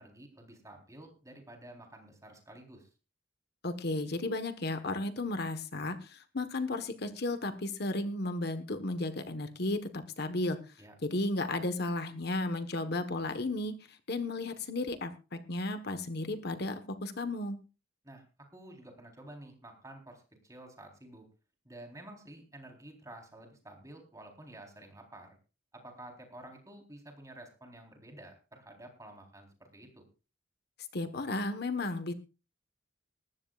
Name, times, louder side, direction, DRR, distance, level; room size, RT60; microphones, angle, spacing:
voice 1, 0.0-2.9 10.8-10.9 18.0-18.2 18.5-21.3 21.6-25.4 25.7-30.0, right 1 dB, 15° right, 2 dB, 4.1 m, -51 dB
voice 2, 3.6-10.6 11.0-17.6 30.9-32.1, left 2 dB, 55° left, 9 dB, 1.4 m, -34 dB
20.5 x 14.5 x 2.5 m, 0.32 s
head